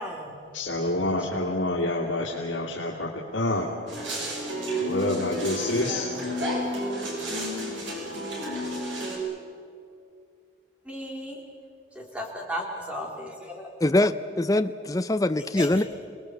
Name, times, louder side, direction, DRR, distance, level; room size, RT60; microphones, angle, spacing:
voice 1, 0.0-0.4 1.2-1.3 10.9-11.4 11.9-13.7 15.6-15.7, equal, 5° right, 0 dB, 3.6 m, -35 dB
voice 2, 0.5-3.7 4.8-6.1, left 1 dB, 90° left, -4 dB, 2.6 m, -27 dB
sound 1, 3.9-9.2, equal, 75° right, 6.2 m, -31 dB
voice 3, 13.8-15.8, left 1 dB, 20° left, 10 dB, 0.5 m, -23 dB
28.0 x 19.5 x 7.9 m, 2.4 s
head